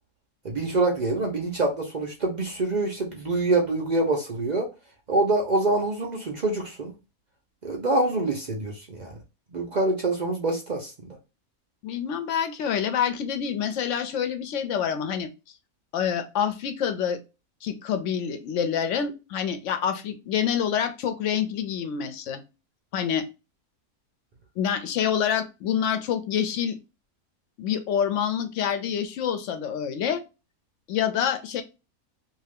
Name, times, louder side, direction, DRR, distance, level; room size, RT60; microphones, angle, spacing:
voice 1, 0.4-4.7 5.1-6.9 7.6-9.1 9.5-10.9, right 2 dB, 60° right, 0.4 m, -25 dB
voice 2, 11.8-15.3 15.9-17.2 17.6-22.4 22.9-23.2 24.6-26.8 27.6-30.2 30.9-31.6, left 8 dB, 65° left, 0.8 m, -27 dB
2.6 x 2.3 x 3.3 m
omnidirectional pair, 1.6 m